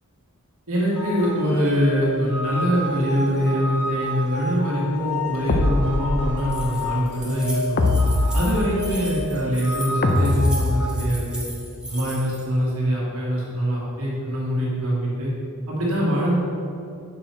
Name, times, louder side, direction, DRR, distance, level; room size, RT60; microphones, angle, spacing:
voice 1, 0.7-7.8 8.3-11.4 11.9-15.3 15.7-16.3, equal, 70° right, -6 dB, 1.4 m, -23 dB
sound 1, 0.9-10.9, left 1 dB, 85° left, 1.4 m, -32 dB
sound 2, 5.5-6.6 7.8-9.0 10.0-11.3, left 2 dB, 45° left, 0.4 m, -22 dB
Keys jangling, 6.4-12.4, right 1 dB, 5° right, 0.9 m, -37 dB
6.0 x 4.7 x 4.2 m, 2.6 s
head